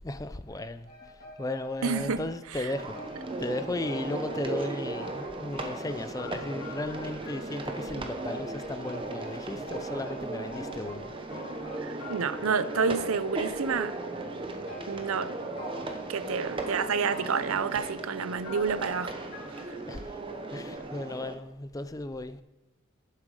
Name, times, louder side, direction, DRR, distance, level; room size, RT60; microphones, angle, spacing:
voice 1, 0.0-1.1 1.4-3.0 3.4-11.2 19.9-20.0 20.5-22.4, left 2 dB, 15° left, 0.4 m, -35 dB
sound 1, 0.9-2.4 2.9-7.9 8.3-13.4 14.7-16.1 17.1-17.6 18.4-20.1 20.7-20.8, left 2 dB, 45° left, 2.6 m, -47 dB
voice 2, 1.8-2.2 2.5-2.7 11.8-14.0 14.9-15.4 16.1-19.1 19.6-19.8, right 5 dB, 75° right, 0.6 m, -29 dB
sound 2, 2.7-21.3, right 2 dB, 25° right, 0.8 m, -37 dB
10.0 x 7.5 x 4.9 m
head